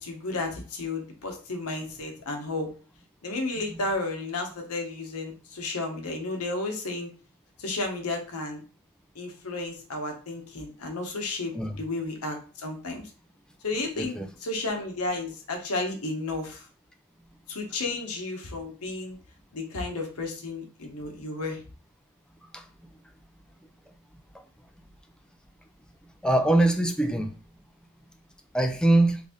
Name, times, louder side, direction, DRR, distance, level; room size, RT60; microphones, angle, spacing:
voice 1, 0.0-2.7 3.2-7.1 7.6-8.6 9.1-13.1 13.6-16.6 17.5-19.2 19.5-21.6, left 2 dB, 80° left, 3 dB, 0.9 m, -32 dB
voice 2, 14.0-14.3 22.5-22.6 26.2-27.3 28.5-29.2, right 1 dB, 5° left, 6 dB, 0.3 m, -23 dB
3.3 x 2.6 x 3.6 m, 0.39 s
head